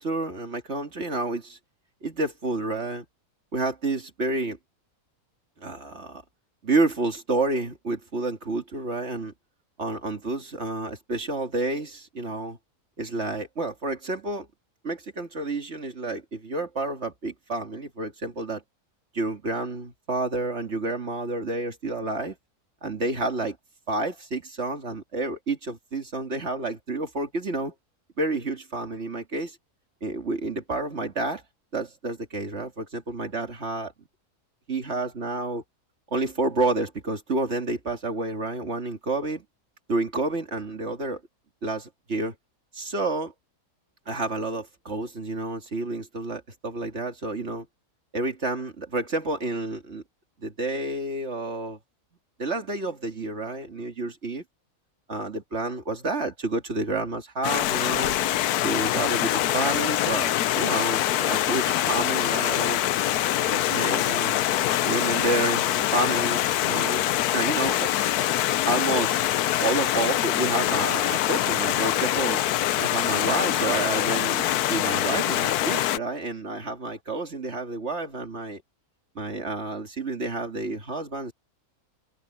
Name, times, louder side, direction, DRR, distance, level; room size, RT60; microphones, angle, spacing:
voice 1, 0.0-1.6 2.0-3.0 3.5-4.6 5.6-6.2 6.6-9.3 9.8-12.6 13.0-14.5 14.8-18.6 19.1-22.4 22.8-23.6 23.9-27.7 28.2-29.6 30.0-31.4 31.7-33.9 34.7-35.6 36.1-39.4 39.9-41.2 41.6-42.3 42.7-43.3 44.1-47.7 48.1-50.0 50.4-51.8 52.4-54.4 55.1-58.2 58.6-62.8 63.5-64.4 64.8-67.0 67.3-67.9 68.7-69.2 69.6-72.4 72.8-78.6 79.2-81.3, right 2 dB, 45° right, 2.5 m, -29 dB
Stream, 57.4-76.0, left 13 dB, 85° left, 1.2 m, -24 dB
open air
omnidirectional pair, 1.6 m